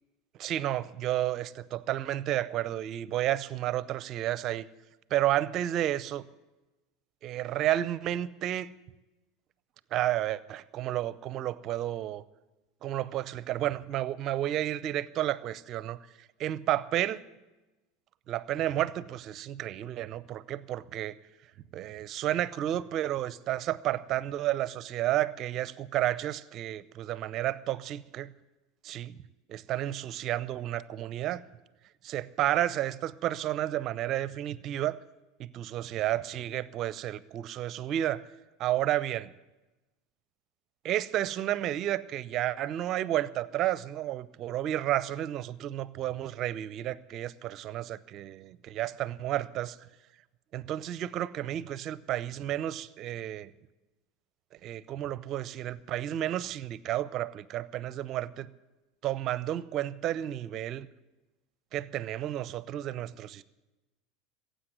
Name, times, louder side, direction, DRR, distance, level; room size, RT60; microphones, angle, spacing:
voice 1, 0.4-4.7 5.1-6.2 7.2-8.7 9.9-12.2 12.8-16.0 16.4-17.2 18.3-21.1 21.7-28.3 28.8-29.2 29.5-31.4 32.0-35.0 35.4-38.3 38.6-39.3 40.8-49.8 50.5-53.5 54.6-58.5 59.0-60.9 61.7-63.4, right 13 dB, 45° right, 19 dB, 0.6 m, -31 dB
15.5 x 8.2 x 9.6 m, 1.1 s
hypercardioid pair, 80°, 0 cm